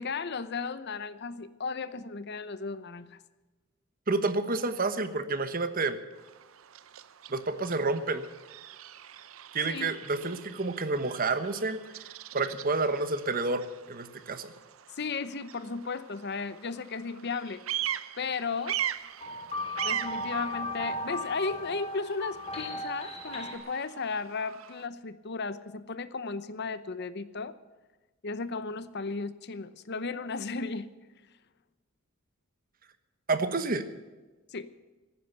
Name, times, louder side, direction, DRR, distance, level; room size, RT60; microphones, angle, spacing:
voice 1, 0.0-3.2 9.6-9.9 14.9-17.6 18.2-18.8 19.8-27.6 28.2-30.9 34.5-34.7, left 4 dB, 55° left, 14 dB, 0.8 m, -35 dB
voice 2, 4.1-6.0 7.3-8.3 9.5-11.8 12.3-14.5 33.3-33.9, right 3 dB, 45° right, 11 dB, 1.2 m, -29 dB
Bird vocalization bird call bird song, 6.1-24.9, right 11 dB, 85° right, 0.7 m, -41 dB
sound 1, 19.2-23.6, left 1 dB, 30° left, 3.4 m, -36 dB
16.0 x 10.0 x 8.0 m, 1.2 s
head